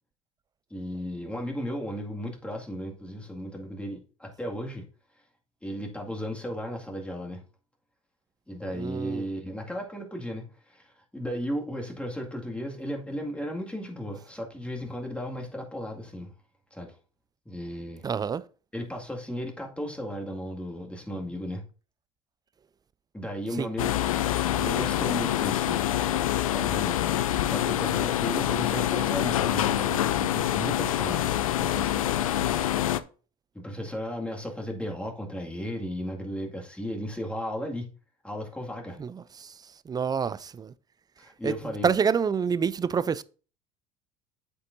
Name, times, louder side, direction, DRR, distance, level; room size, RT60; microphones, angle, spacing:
voice 1, 0.7-4.9 5.6-7.4 8.5-16.3 16.7-16.9 17.5-18.0 18.7-21.6 23.1-24.1 24.5-25.8 26.5-27.0 27.4-32.0 33.5-37.9 38.2-39.0 41.2-41.9, equal, 5° left, 2.1 m, -35 dB
voice 2, 8.7-9.2 18.0-18.4 23.6-23.7 39.0-39.5 39.9-40.7 41.4-41.5 41.8-43.2, right 6 dB, 25° right, 0.5 m, -27 dB
sound 1, 23.8-33.0, left 12 dB, 90° left, 0.5 m, -26 dB
8.4 x 8.0 x 2.6 m
hypercardioid pair, 80°, 17 cm